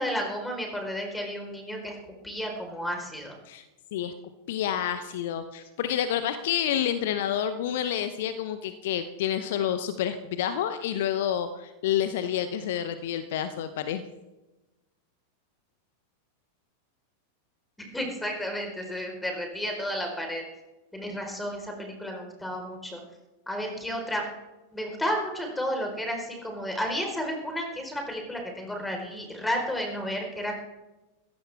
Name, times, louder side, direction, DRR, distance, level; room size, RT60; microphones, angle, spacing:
voice 1, 0.0-1.9 2.2-3.4 17.9-20.4 20.9-23.0 23.5-24.2 24.7-30.6, equal, 5° left, 2 dB, 4.5 m, -32 dB
voice 2, 4.5-14.0, left 10 dB, 55° left, 11 dB, 0.9 m, -29 dB
21.0 x 16.0 x 3.6 m, 1.0 s
figure-of-eight pair, 90°, 0 cm